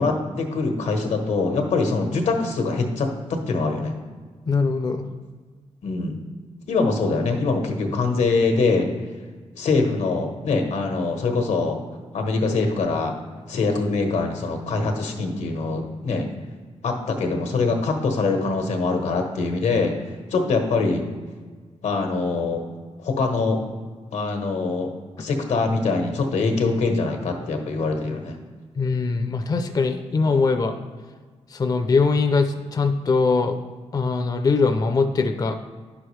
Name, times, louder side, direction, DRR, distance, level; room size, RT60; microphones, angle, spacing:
voice 1, 0.0-3.9 5.8-6.2 6.7-8.9 9.5-11.8 12.1-13.1 13.5-16.3 16.8-19.9 20.3-21.0 21.8-22.6 23.0-23.6 24.1-24.9 25.2-28.4, left 3 dB, 85° left, 4 dB, 1.2 m, -23 dB
voice 2, 4.5-5.1 28.8-30.8 31.5-33.6 33.9-35.5, left 4 dB, 35° left, 7 dB, 0.5 m, -21 dB
10.5 x 6.1 x 3.2 m, 1.5 s
wide cardioid pair, 140°, 12 cm